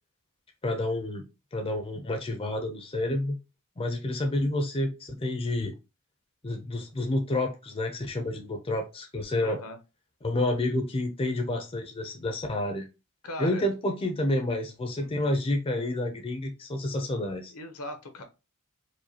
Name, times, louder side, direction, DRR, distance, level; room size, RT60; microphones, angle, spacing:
voice 1, 0.6-1.2 1.5-3.4 3.8-5.7 6.4-9.6 10.2-12.9 13.4-17.5, left 1 dB, 25° left, 0.5 m, -29 dB
voice 2, 9.4-9.8 13.2-13.7 14.9-15.3 17.5-18.2, left 1 dB, 75° left, 0.8 m, -39 dB
4.7 x 2.3 x 2.8 m
head